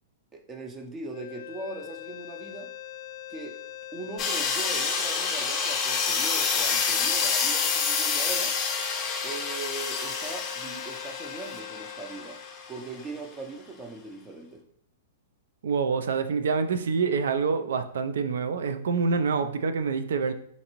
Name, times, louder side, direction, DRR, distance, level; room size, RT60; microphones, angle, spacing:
voice 1, 0.3-2.7 3.3-3.6 3.9-8.6 9.2-12.4 12.7-14.6, right 3 dB, 20° right, 4 dB, 0.6 m, -40 dB
sound 1, 1.1-13.3, left 12 dB, 60° left, 0.5 m, -42 dB
sound 2, 4.2-12.8, left 5 dB, 30° left, 0.7 m, -28 dB
voice 2, 15.6-20.3, right 5 dB, 75° right, 8 dB, 0.4 m, -26 dB
4.0 x 2.5 x 3.0 m, 0.67 s
hypercardioid pair, 125°, 0 cm